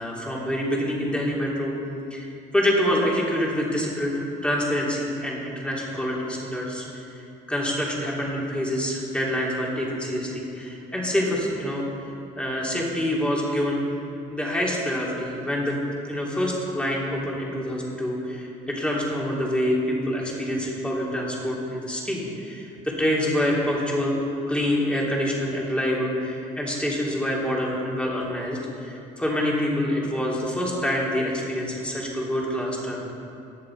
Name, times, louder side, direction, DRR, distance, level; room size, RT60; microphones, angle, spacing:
voice 1, 0.0-1.7 2.1-2.3 2.5-7.0 7.5-11.9 12.4-13.8 14.3-15.8 16.0-24.2 24.5-33.0, equal, 5° left, -4 dB, 3.2 m, -26 dB
19.0 x 6.7 x 4.8 m, 2.8 s
cardioid pair, 95°, 17 cm